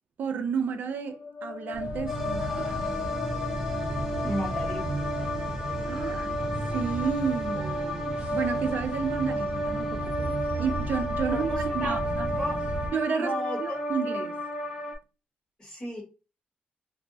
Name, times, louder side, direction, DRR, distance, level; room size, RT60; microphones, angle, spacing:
voice 1, 0.2-2.8 5.9-6.3 6.7-12.3 12.9-14.4, right 6 dB, 70° right, 0.4 m, -31 dB
sound 1, 1.0-6.8, left 6 dB, 85° left, 0.4 m, -38 dB
sound 2, 1.7-12.9, right 1 dB, 40° right, 0.8 m, -35 dB
sound 3, 2.1-15.0, equal, 10° right, 0.7 m, -32 dB
voice 2, 4.2-4.9 11.3-12.0 12.4-12.6 13.2-13.8 15.6-16.0, equal, 25° left, 1.3 m, -33 dB
2.6 x 2.1 x 2.6 m
wide cardioid pair, 135°, 3 cm